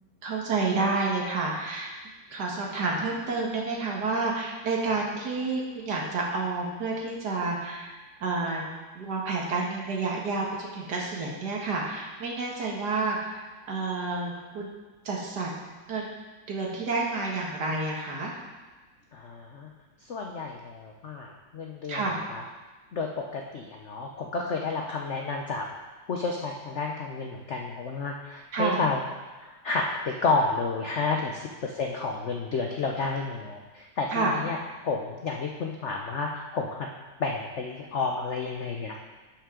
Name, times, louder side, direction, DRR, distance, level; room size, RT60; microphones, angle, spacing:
voice 1, 0.2-1.9 2.3-7.9 8.2-8.6 9.0-13.4 13.7-14.7 15.0-15.5 15.9-16.1 16.5-18.4 21.9-22.2 28.5-28.8 34.1-34.4, right 3 dB, 60° right, -2 dB, 2.0 m, -29 dB
voice 2, 19.1-19.7 20.1-22.4 22.9-25.7 26.1-29.0 29.4-34.6 34.8-36.7 37.2-39.0, left 4 dB, 60° left, 1 dB, 0.7 m, -31 dB
11.5 x 5.9 x 3.7 m, 1.2 s
omnidirectional pair, 2.0 m